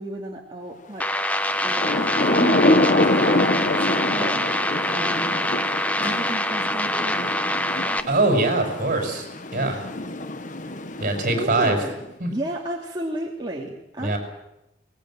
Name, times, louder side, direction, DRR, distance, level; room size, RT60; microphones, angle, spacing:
voice 1, 0.0-5.6 6.0-7.4 9.6-9.9 10.5-10.8 11.2-12.0 12.3-14.2, right 1 dB, 25° right, -3 dB, 2.8 m, -33 dB
sound 1, 1.0-8.0, left 1 dB, 10° left, 1.1 m, -25 dB
Thunder / Rain, 1.5-12.1, left 2 dB, 45° left, 1.3 m, -25 dB
voice 2, 8.1-9.3 9.5-9.8 11.0-11.8 12.2-12.3 14.0-14.2, right 2 dB, 45° right, 3 dB, 6.6 m, -22 dB
23.5 x 20.0 x 9.1 m, 0.88 s
head